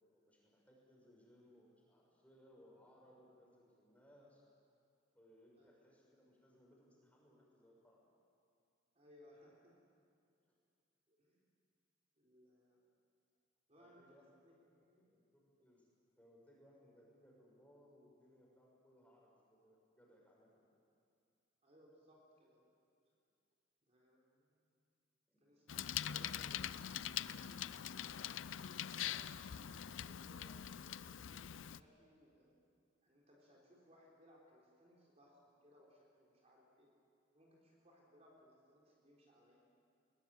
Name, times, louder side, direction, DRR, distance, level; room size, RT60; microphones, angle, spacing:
voice 1, 0.1-4.4 5.1-8.0 10.4-10.6 13.7-15.9 16.2-20.7 25.3-25.6, equal, 10° left, -3 dB, 6.1 m, -66 dB
voice 2, 8.9-10.0 11.1-11.5 12.2-12.9 13.7-14.6 14.8-15.1 21.6-22.7 23.8-24.9 25.4-27.0 27.3-28.5 29.0-32.6 33.0-36.9 37.3-39.7, equal, 35° right, -3 dB, 3.9 m, -66 dB
Bicycle, 25.7-31.8, left 10 dB, 80° left, 0.5 m, -43 dB
21.5 x 20.5 x 9.0 m, 2.3 s
head